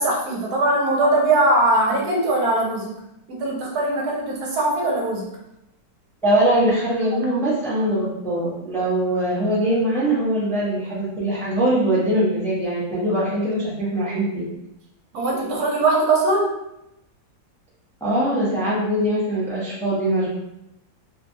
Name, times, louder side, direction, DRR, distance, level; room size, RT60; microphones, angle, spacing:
voice 1, 0.0-2.9 3.3-5.2 15.1-16.5, right 2 dB, 75° right, -2 dB, 1.2 m, -20 dB
voice 2, 6.2-14.4 18.0-20.3, right 1 dB, ahead, -9 dB, 0.6 m, -22 dB
3.3 x 2.3 x 2.6 m, 0.85 s
omnidirectional pair, 1.7 m